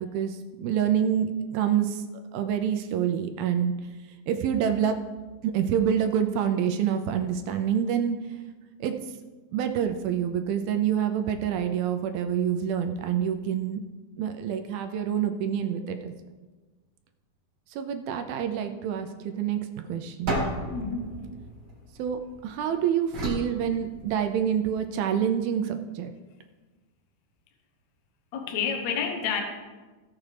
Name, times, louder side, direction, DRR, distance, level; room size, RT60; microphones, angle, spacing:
voice 1, 0.0-2.0 2.3-3.7 4.3-5.0 5.4-8.2 8.8-8.9 9.5-13.8 14.2-16.1 17.7-19.6 19.9-20.3 22.0-26.1, right 8 dB, 80° right, 6 dB, 2.3 m, -27 dB
sound 1, 20.3-22.5 23.1-24.5, right 1 dB, 35° right, 2.6 m, -33 dB
voice 2, 20.7-21.2 28.3-29.4, left 6 dB, 70° left, 3 dB, 1.7 m, -29 dB
16.0 x 7.2 x 3.3 m, 1.3 s
omnidirectional pair, 4.7 m